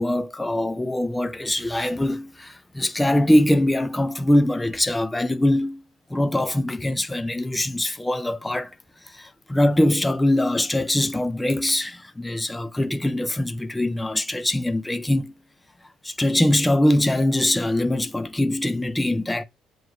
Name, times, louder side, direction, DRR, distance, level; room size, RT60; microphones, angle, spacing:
voice 1, 0.0-5.8 6.1-8.8 9.0-15.3 16.0-19.4, left 1 dB, 10° left, 0.6 m, -22 dB
7.4 x 3.2 x 4.8 m
supercardioid pair, 75°, 0 cm